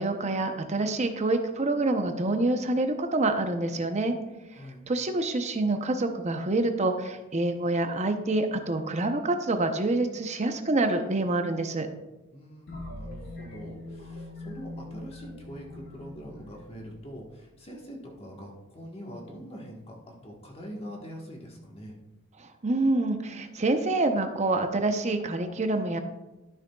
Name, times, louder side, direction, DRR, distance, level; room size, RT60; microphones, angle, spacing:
voice 1, 0.0-4.2 4.9-11.9 22.4-26.0, right 2 dB, 30° right, 7 dB, 0.7 m, -27 dB
voice 2, 12.3-22.0, equal, 30° left, -1 dB, 1.3 m, -43 dB
sound 1, 12.7-17.4, left 1 dB, 55° left, 1.8 m, -42 dB
12.5 x 6.3 x 2.3 m, 1.1 s
head